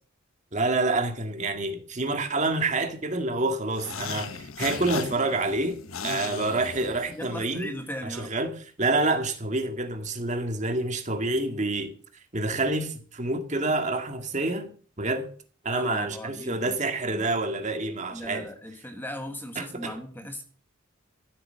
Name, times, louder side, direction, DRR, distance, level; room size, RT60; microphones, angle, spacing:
voice 1, 0.5-7.8 8.0-11.9 12.3-15.3 15.6-18.5 19.6-20.0, right 2 dB, 35° right, 2.0 m, -28 dB
sound 1, 3.7-7.4, left 6 dB, 85° left, 1.0 m, -36 dB
voice 2, 7.1-8.3 15.7-16.7 17.0-17.3 18.1-20.4, equal, 10° left, 1.5 m, -38 dB
14.5 x 8.5 x 6.7 m
head